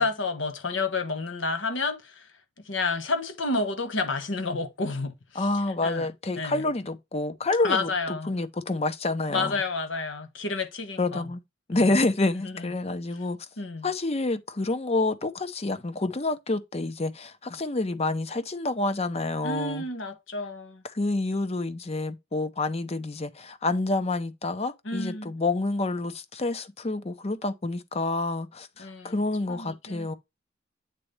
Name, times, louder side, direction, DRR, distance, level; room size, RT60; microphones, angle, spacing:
voice 1, 0.0-2.3 2.7-5.4 5.8-6.1 6.4-6.7 7.6-8.3 9.3-11.3 11.7-11.9 12.4-12.5 13.6-13.9 19.4-20.8 24.9-25.3 28.8-29.1 29.5-30.1, left 3 dB, 70° left, 1.2 m, -30 dB
voice 2, 5.3-9.6 11.0-11.4 11.7-13.5 13.8-19.8 20.8-30.1, left 2 dB, 30° left, 0.7 m, -28 dB
8.4 x 4.0 x 3.2 m
head